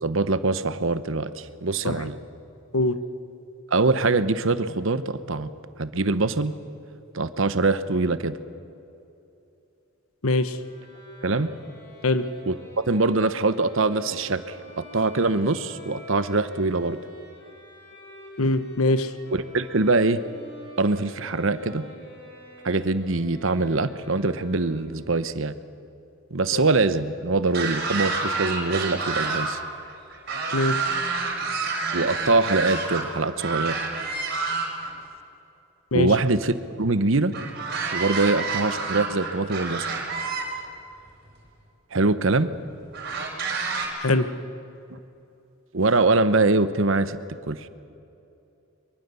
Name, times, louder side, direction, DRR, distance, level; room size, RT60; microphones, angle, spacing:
voice 1, 0.0-2.2 3.7-5.5 5.8-6.5 7.1-8.4 11.2-11.5 12.5-17.0 19.3-20.2 20.8-21.9 22.6-25.5 26.3-29.6 31.9-33.8 35.9-37.3 37.9-39.9 41.9-42.5 44.9-45.0 45.7-47.2 47.5-47.7, right 3 dB, 65° right, 12 dB, 1.0 m, -23 dB
voice 2, 10.2-10.6 12.0-12.2 18.4-19.1 26.5-26.6 30.5-30.8 35.9-36.1 44.0-44.3, left 2 dB, 85° left, 11 dB, 1.2 m, -22 dB
Bowed string instrument, 10.5-25.2, equal, 50° left, 6.8 m, -47 dB
sound 1, 27.5-29.5 29.8-33.0 33.4-34.9 37.3-40.4 41.4-41.5 42.9-43.9, right 4 dB, 45° right, 4.9 m, -28 dB
23.5 x 23.5 x 7.0 m, 2.7 s
head